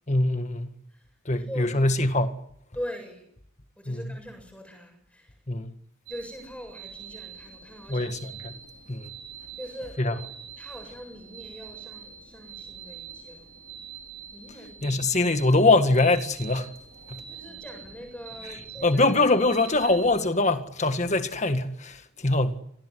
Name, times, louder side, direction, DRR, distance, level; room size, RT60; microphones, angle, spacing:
voice 1, 0.1-0.7 1.2-2.4 3.9-4.0 5.5-5.7 7.9-8.6 8.9-9.1 10.0-10.1 14.8-16.7 17.1-17.2 18.8-22.6, left 2 dB, 30° left, 1.7 m, -23 dB
voice 2, 0.9-1.8 2.7-3.3 3.8-5.4 6.1-8.3 9.6-10.2 10.6-13.5 14.3-15.0 17.3-19.2, equal, 5° left, 7.7 m, -42 dB
sound 1, 6.1-20.3, right 8 dB, 40° right, 5.0 m, -44 dB
26.5 x 19.5 x 9.7 m
head